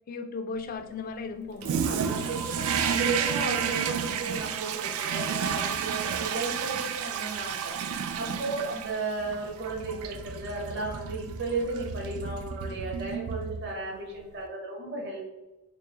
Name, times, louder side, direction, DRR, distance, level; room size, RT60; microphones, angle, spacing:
voice 1, 0.1-2.4 8.2-8.6, left 4 dB, 40° left, 7 dB, 0.3 m, -38 dB
Toilet flush, 1.6-13.9, right 7 dB, 85° right, 0.3 m, -31 dB
voice 2, 1.8-15.3, right 3 dB, 55° right, -2 dB, 0.9 m, -34 dB
3.3 x 2.8 x 3.2 m, 1.0 s
head